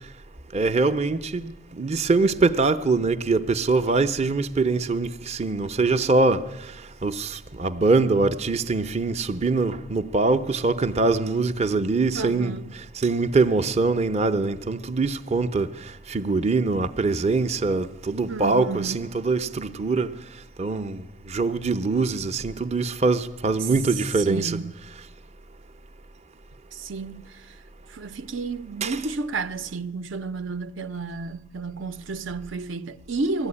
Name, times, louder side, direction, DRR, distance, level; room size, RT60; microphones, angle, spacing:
voice 1, 0.5-20.1 20.6-24.6 28.8-29.0, right 3 dB, 35° right, 0.7 m, -23 dB
voice 2, 12.1-12.7 18.3-19.1 23.6-23.7 24.2-24.7 26.7-27.6 27.9-33.5, right 3 dB, 70° right, 0.8 m, -32 dB
20.0 x 14.5 x 9.8 m
head